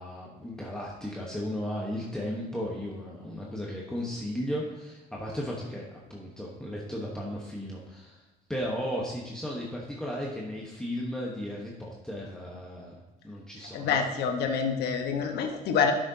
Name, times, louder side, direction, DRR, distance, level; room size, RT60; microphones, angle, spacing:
voice 1, 0.0-8.2 8.5-12.9 13.2-14.0, equal, 5° left, -4 dB, 1.1 m, -35 dB
voice 2, 13.7-15.9, left 6 dB, 75° left, 4 dB, 1.2 m, -27 dB
11.5 x 6.5 x 2.8 m, 1.1 s
cardioid pair, 110°, 17 cm